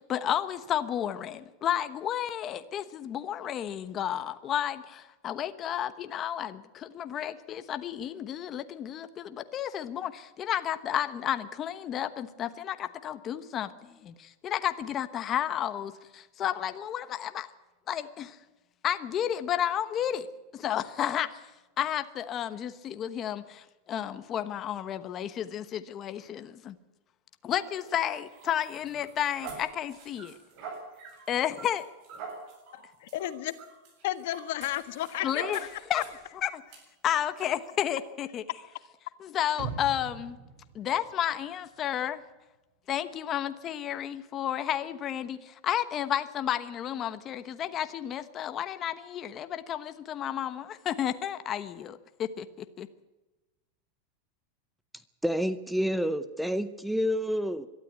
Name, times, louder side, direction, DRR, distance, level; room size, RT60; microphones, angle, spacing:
voice 1, 0.1-17.5 17.9-18.4 18.8-20.3 20.5-21.5 21.8-26.8 27.4-30.3 31.3-31.9 35.2-35.6 35.9-36.0 36.3-36.6 37.0-38.4 39.2-40.4 40.7-42.2 42.9-52.9, left 10 dB, 25° left, 10 dB, 1.1 m, -32 dB
sound 1, 27.6-36.3 36.7-36.8 37.4-37.5, right 5 dB, 45° right, 7.4 m, -46 dB
voice 2, 32.7-33.5 34.0-35.7 35.9-36.0, left 14 dB, 65° left, 12 dB, 1.5 m, -33 dB
sound 2, 39.6-41.7 42.1-42.2, right 6 dB, 65° right, 2.8 m, -41 dB
voice 3, 55.2-57.7, equal, ahead, 13 dB, 0.7 m, -28 dB
22.5 x 12.5 x 9.4 m, 1.1 s
supercardioid pair, 165°, 0 cm